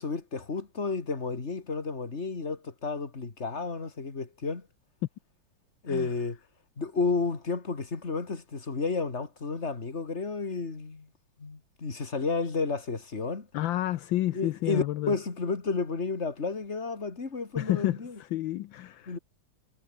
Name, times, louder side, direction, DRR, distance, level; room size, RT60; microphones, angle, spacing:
voice 1, 0.0-4.7 5.8-6.4 6.8-11.1 11.4-13.5 14.3-18.1 19.1-19.2, left 4 dB, 30° left, 2.8 m, -32 dB
voice 2, 13.5-15.1 17.6-19.2, left 15 dB, 75° left, 1.4 m, -30 dB
omnidirectional pair, 2.3 m